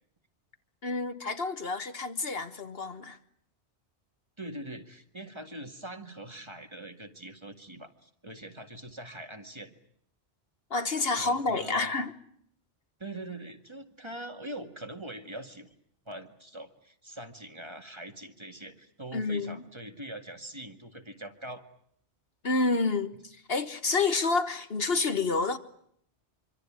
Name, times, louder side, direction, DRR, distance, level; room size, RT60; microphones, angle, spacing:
voice 1, 0.8-3.2 10.7-12.1 19.1-19.6 22.4-25.6, left 3 dB, 60° left, 1.5 m, -29 dB
voice 2, 4.4-9.7 11.1-11.9 13.0-15.7 16.1-21.6, right 1 dB, 25° right, 2.1 m, -43 dB
25.5 x 25.0 x 8.9 m
omnidirectional pair, 1.2 m